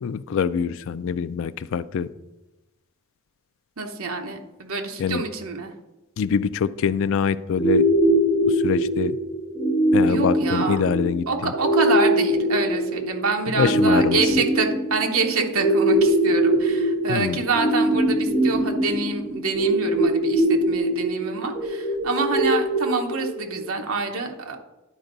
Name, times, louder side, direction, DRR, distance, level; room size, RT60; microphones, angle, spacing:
voice 1, 0.0-2.1 5.0-5.2 6.2-7.8 8.5-9.2 9.9-11.5 13.6-14.2 17.1-17.4, left 6 dB, 60° left, 15 dB, 0.3 m, -24 dB
voice 2, 3.8-5.7 10.0-10.8 11.3-24.6, right 4 dB, 65° right, 3 dB, 1.0 m, -26 dB
sound 1, 7.5-23.5, right 1 dB, 20° left, 2.8 m, -22 dB
11.0 x 4.5 x 3.9 m, 1.0 s
head